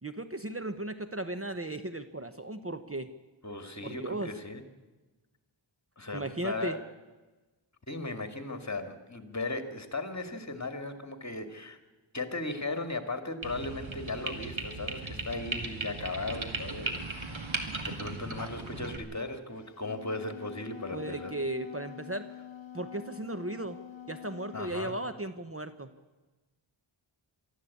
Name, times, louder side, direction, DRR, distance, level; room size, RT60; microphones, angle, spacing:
voice 1, 0.0-3.1 3.8-4.3 6.1-6.8 20.9-22.3 22.7-23.8 24.1-25.9, right 1 dB, 30° right, 9 dB, 1.0 m, -36 dB
voice 2, 3.4-4.6 6.0-6.8 7.9-11.8 12.1-21.4 24.5-24.9, left 2 dB, 35° left, 8 dB, 2.2 m, -37 dB
sound 1, 13.4-19.0, right 3 dB, 75° right, 2.3 m, -37 dB
Wind instrument woodwind instrument, 19.6-24.8, left 10 dB, 65° left, 1.1 m, -46 dB
23.5 x 13.5 x 8.5 m, 1.2 s
wide cardioid pair, 70°, 48 cm